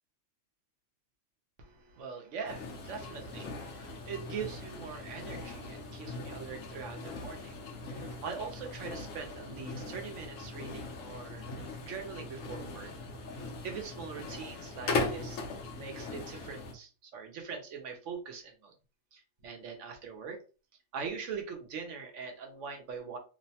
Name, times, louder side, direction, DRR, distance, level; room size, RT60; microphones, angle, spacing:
voice 1, 1.6-7.5 7.8-12.9 13.3-15.4 15.7-18.7 19.1-20.4 20.9-23.2, right 5 dB, 70° right, 3 dB, 1.0 m, -42 dB
sound 1, 2.5-16.7, left 3 dB, 75° left, 1.0 m, -40 dB
3.0 x 2.1 x 2.7 m, 0.34 s
omnidirectional pair, 1.4 m